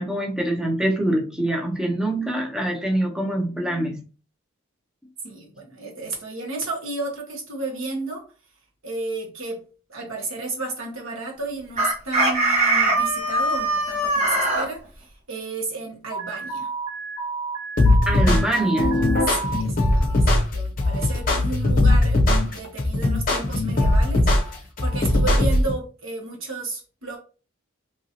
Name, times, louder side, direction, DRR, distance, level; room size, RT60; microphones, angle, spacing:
voice 1, 0.0-4.1 18.1-18.9, right 1 dB, 5° right, 0.5 m, -24 dB
voice 2, 5.2-8.2 8.8-9.6 9.9-16.7 19.3-27.2, right 3 dB, 70° right, 1.1 m, -33 dB
Chicken rooster, 11.8-14.7, right 2 dB, 35° right, 0.8 m, -21 dB
Alarm, 16.1-19.6, right 4 dB, 55° right, 1.6 m, -31 dB
sound 1, 17.8-25.7, left 1 dB, 40° left, 0.6 m, -19 dB
2.9 x 2.6 x 2.7 m
head